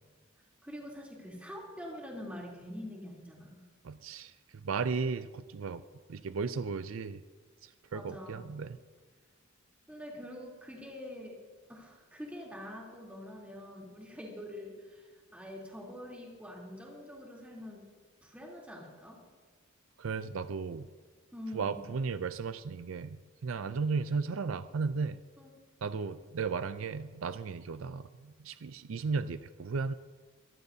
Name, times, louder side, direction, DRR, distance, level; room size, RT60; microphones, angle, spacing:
voice 1, 0.6-3.6 7.9-8.5 9.9-11.4 11.7-17.9 18.2-19.2 21.3-21.8 25.4-25.5, left 1 dB, 5° right, -3 dB, 3.2 m, -45 dB
voice 2, 3.8-4.3 4.6-5.8 6.1-7.2 7.6-8.7 20.0-20.9 21.5-25.2 25.8-29.9, right 5 dB, 70° right, 12 dB, 0.5 m, -35 dB
23.5 x 15.0 x 2.8 m, 1.5 s
head